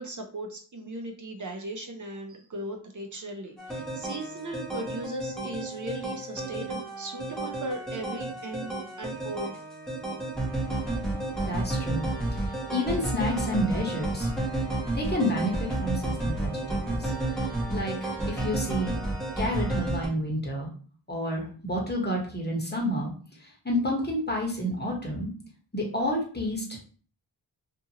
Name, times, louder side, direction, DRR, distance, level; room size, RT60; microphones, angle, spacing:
voice 1, 0.0-9.6, right 1 dB, 40° right, 4 dB, 0.6 m, -38 dB
sound 1, 3.6-20.1, right 2 dB, ahead, 0.9 m, -31 dB
voice 2, 11.4-12.0 12.7-14.3 14.9-17.1 17.7-19.0 19.4-20.7 21.1-23.1 23.6-25.3 25.7-26.6, equal, 20° left, -2 dB, 1.1 m, -29 dB
2.6 x 2.5 x 2.8 m, 0.42 s
cardioid pair, 45°, 47 cm